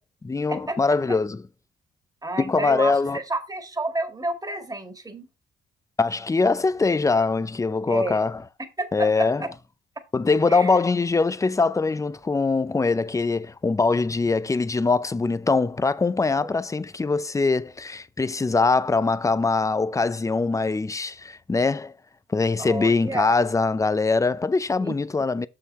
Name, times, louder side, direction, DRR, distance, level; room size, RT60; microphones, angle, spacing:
voice 1, 0.2-1.4 2.4-3.2 6.0-8.4 8.9-9.5 10.1-21.9 22.3-25.5, left 3 dB, 15° left, 0.5 m, -22 dB
voice 2, 2.2-5.3 7.9-8.2 8.8-9.5 10.5-10.8 16.4-16.6 22.6-23.4 24.8-25.0, right 2 dB, 20° right, 1.8 m, -30 dB
6.6 x 5.8 x 4.2 m
cardioid pair, 90°, 20 cm